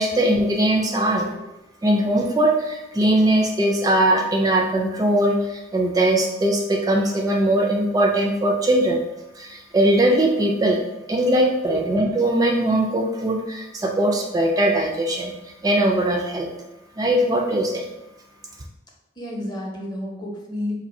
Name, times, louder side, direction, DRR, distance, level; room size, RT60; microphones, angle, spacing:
voice 1, 0.0-1.3 1.8-9.0 9.3-10.8 11.1-15.3 15.6-16.5 17.0-17.9, right 1 dB, 20° right, 1 dB, 0.3 m, -20 dB
voice 2, 1.1-1.5 11.7-11.9 19.2-20.7, left 1 dB, 20° left, -2 dB, 0.7 m, -31 dB
2.6 x 2.6 x 4.1 m, 0.95 s
head